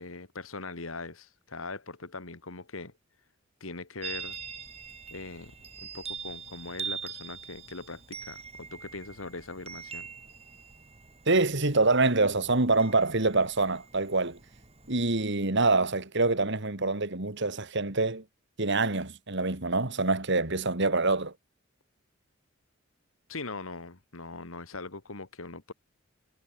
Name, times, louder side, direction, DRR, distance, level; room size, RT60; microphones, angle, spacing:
voice 1, 0.0-2.9 3.6-4.4 5.1-5.5 5.8-10.1 23.3-25.7, left 3 dB, 90° left, 2.3 m, -41 dB
Chime, 4.0-15.2, right 6 dB, 30° right, 7.1 m, -43 dB
voice 2, 11.3-14.4 14.9-18.2 18.6-21.3, right 3 dB, 60° right, 2.6 m, -25 dB
head